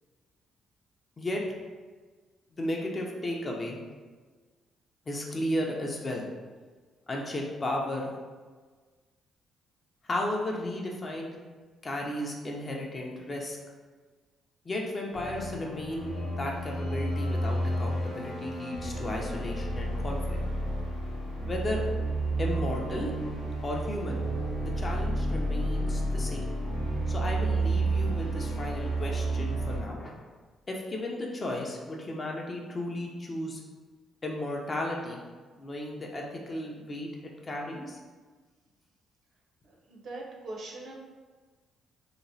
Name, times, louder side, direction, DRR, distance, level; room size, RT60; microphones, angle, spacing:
voice 1, 2.5-3.8 5.1-6.2 7.1-8.1 10.0-11.4 11.8-13.6 14.6-20.4 21.4-21.8 22.4-23.1 23.6-24.2 24.6-26.4 27.1-30.2 30.7-33.6 34.2-35.2 35.6-37.1 37.4-38.0, left 1 dB, 30° left, -1 dB, 0.5 m, -34 dB
sound 1, 15.1-29.8, right 1 dB, 85° left, 0.8 m, -31 dB
sound 2, 22.0-27.2, right 2 dB, 20° right, 0.5 m, -41 dB
voice 2, 39.6-41.0, right 2 dB, 60° right, -1 dB, 0.5 m, -41 dB
2.9 x 2.0 x 2.6 m, 1.4 s
cardioid pair, 90°, 0 cm